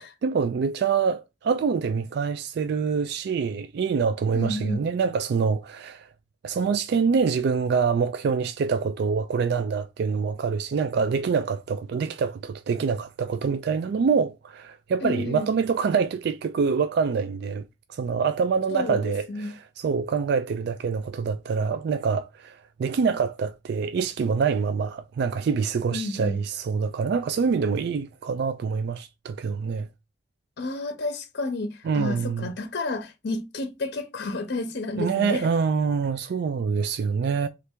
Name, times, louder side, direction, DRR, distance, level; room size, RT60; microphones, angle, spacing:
voice 1, 0.0-6.1 6.4-17.6 17.9-29.9 31.8-32.5 35.0-37.5, right 5 dB, 60° right, 0.3 m, -25 dB
voice 2, 4.3-4.8 15.0-15.5 18.7-19.0 19.3-19.5 25.9-26.4 30.6-35.5, left 2 dB, 60° left, 0.7 m, -31 dB
3.3 x 2.5 x 4.3 m
head